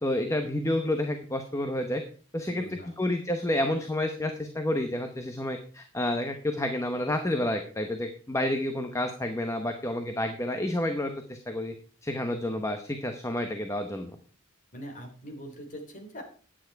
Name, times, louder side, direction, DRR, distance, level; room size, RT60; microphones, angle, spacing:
voice 1, 0.0-2.0 2.3-11.7 12.0-14.1, left 1 dB, 15° left, 6 dB, 0.9 m, -30 dB
voice 2, 2.5-3.0 14.7-16.2, equal, 35° left, 2 dB, 3.3 m, -42 dB
10.0 x 9.3 x 4.6 m, 0.40 s
head